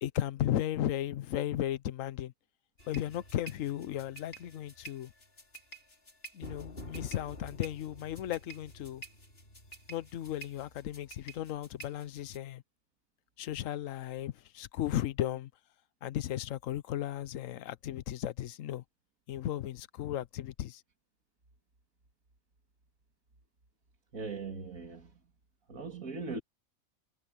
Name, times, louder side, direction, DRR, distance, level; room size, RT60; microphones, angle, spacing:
voice 1, 0.0-2.3 2.9-5.1 6.3-9.0 9.9-12.6 13.4-15.5 16.0-18.8 19.3-20.8, left 12 dB, 65° left, 1.1 m, -35 dB
sound 1, 2.8-12.4, right 1 dB, 40° left, 4.1 m, -49 dB
voice 2, 24.1-25.1 25.7-26.4, right 4 dB, 70° right, 2.9 m, -39 dB
omnidirectional pair, 1.5 m